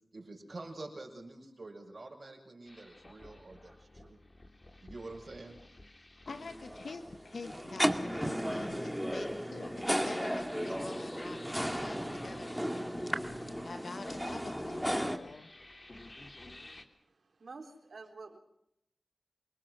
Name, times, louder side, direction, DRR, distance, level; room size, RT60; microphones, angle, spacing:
voice 1, 0.1-4.2 4.8-5.6, right 2 dB, 55° right, 0 dB, 6.1 m, -47 dB
sound 1, 2.7-16.8, left 1 dB, 35° left, 2.8 m, -51 dB
voice 2, 6.2-12.0 12.2-15.5, left 4 dB, 75° left, 8 dB, 1.4 m, -47 dB
sound 2, 6.3-15.2, equal, 5° right, 2.2 m, -35 dB
voice 3, 16.9-18.4, right 4 dB, 75° right, 5 dB, 3.6 m, -49 dB
26.5 x 19.0 x 6.2 m, 0.76 s
cardioid pair, 45°, 0 cm